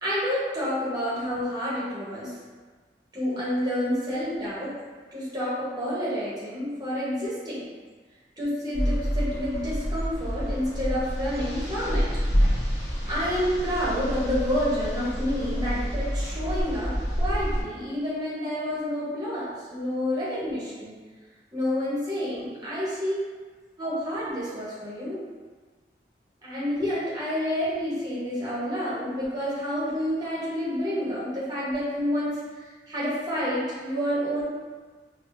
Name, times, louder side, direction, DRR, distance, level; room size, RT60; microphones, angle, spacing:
voice 1, 0.0-2.3 3.1-4.7 5.1-7.7 8.4-12.1 13.0-21.0 21.5-23.2 23.8-25.2 26.4-34.4, equal, 25° right, -9 dB, 0.8 m, -29 dB
sound 1, 8.7-17.6, equal, 40° left, 1.3 m, -28 dB
3.3 x 2.0 x 2.5 m, 1.4 s
head